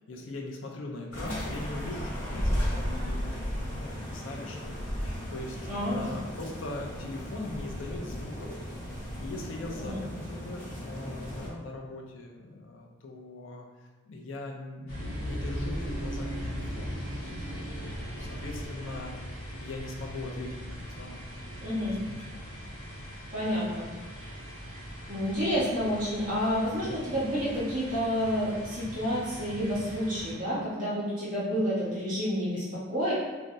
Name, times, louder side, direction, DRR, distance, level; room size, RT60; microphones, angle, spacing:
voice 1, 0.1-5.6 5.9-8.6 9.2-13.7 14.1-21.5 22.0-22.4 26.8-27.1, left 2 dB, 65° left, 1 dB, 0.4 m, -41 dB
sound 1, 1.1-11.5, equal, 35° left, 0.9 m, -35 dB
voice 2, 5.7-6.1 9.8-10.0 21.6-22.0 23.3-23.9 24.1-24.3 25.1-33.1, equal, 40° right, -10 dB, 0.9 m, -29 dB
sound 2, 14.9-30.3, equal, 90° left, 1.0 m, -39 dB
2.6 x 2.0 x 3.4 m, 1.3 s
head